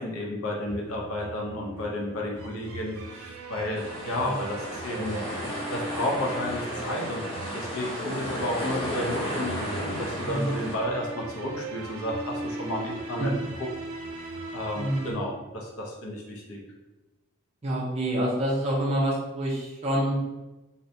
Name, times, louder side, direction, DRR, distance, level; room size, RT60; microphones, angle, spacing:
voice 1, 0.0-5.2 5.7-7.2 7.5-13.3 13.6-13.7 14.2-16.6, left 1 dB, 75° left, -2 dB, 0.6 m, -32 dB
sound 1, 0.7-15.1, right 2 dB, 85° right, 0.4 m, -39 dB
sound 2, 3.7-10.8, equal, 25° left, 0.5 m, -34 dB
voice 2, 10.2-10.6 13.2-13.3 14.7-15.1 17.6-20.1, right 1 dB, 30° right, -4 dB, 0.4 m, -27 dB
2.6 x 2.1 x 2.6 m, 1.1 s
head